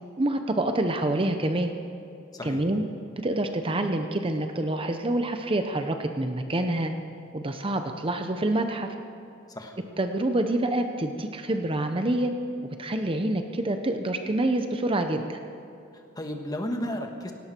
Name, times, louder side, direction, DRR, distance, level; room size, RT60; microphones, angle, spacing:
voice 1, 0.2-1.7 2.4-2.8 3.2-6.9 7.3-8.9 10.0-12.3 12.8-15.4, right 1 dB, 30° right, 6 dB, 0.7 m, -27 dB
voice 2, 2.3-2.6 9.5-9.8 15.9-17.3, left 1 dB, 20° left, 4 dB, 1.4 m, -33 dB
17.5 x 17.5 x 4.5 m, 2.7 s
head